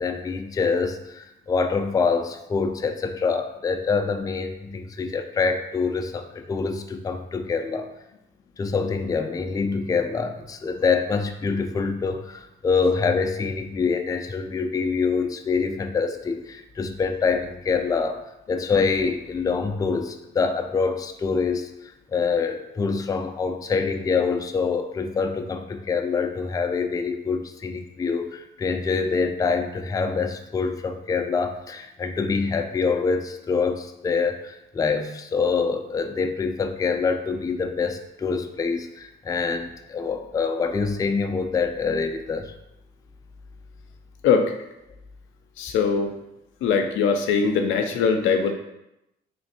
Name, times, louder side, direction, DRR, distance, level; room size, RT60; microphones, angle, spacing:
voice 1, 0.0-7.9 8.6-21.7 22.1-42.5, left 5 dB, 20° left, 6 dB, 0.3 m, -25 dB
voice 2, 44.2-44.6 45.6-46.1 46.6-48.5, left 5 dB, 85° left, 5 dB, 0.5 m, -21 dB
3.2 x 2.5 x 4.1 m, 0.87 s
cardioid pair, 90°, 20 cm